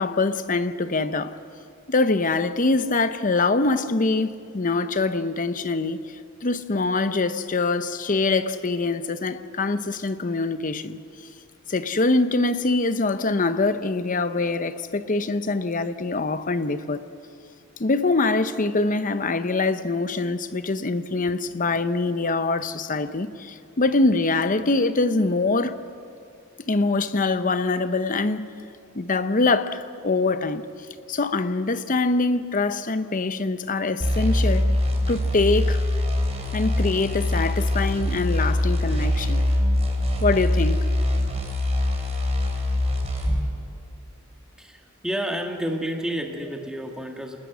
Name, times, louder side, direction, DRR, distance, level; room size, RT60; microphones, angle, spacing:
voice 1, 0.0-1.4 1.9-6.1 6.4-11.0 11.7-17.0 17.8-25.8 26.7-28.5 28.9-30.6 31.1-34.7 35.1-35.8 36.5-39.4 40.2-40.9, left 3 dB, 40° left, 0.8 m, -24 dB
sound 1, 34.0-43.5, left 1 dB, 30° right, 3.8 m, -23 dB
voice 2, 44.6-47.4, equal, 5° right, 1.9 m, -30 dB
27.5 x 20.0 x 6.2 m
head